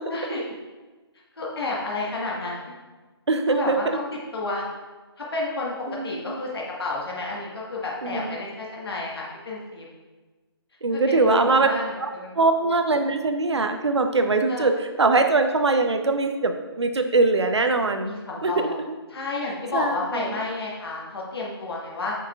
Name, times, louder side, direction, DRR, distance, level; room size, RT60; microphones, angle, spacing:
voice 1, 0.1-0.4 1.4-2.6 3.5-4.0 4.3-4.7 5.2-9.9 10.9-12.3 14.5-14.7 18.0-18.8 19.1-22.1, left 3 dB, 65° left, -3 dB, 1.4 m, -31 dB
voice 2, 3.3-4.0 5.9-6.4 8.0-8.4 10.8-11.7 12.0-12.1 12.3-18.1 18.4-18.7 19.7-20.4, right 3 dB, 85° right, 6 dB, 0.7 m, -22 dB
7.2 x 6.0 x 2.4 m, 1.3 s
figure-of-eight pair, 155°, 14 cm